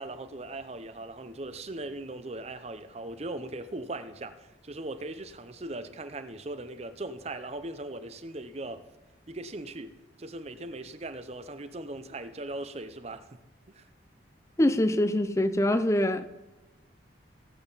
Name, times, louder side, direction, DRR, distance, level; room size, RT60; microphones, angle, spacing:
voice 1, 0.0-8.9 9.3-13.3 13.7-13.9, right 2 dB, 35° right, 0.7 m, -39 dB
voice 2, 14.6-16.3, left 1 dB, 15° left, 0.5 m, -24 dB
17.5 x 7.8 x 4.0 m
head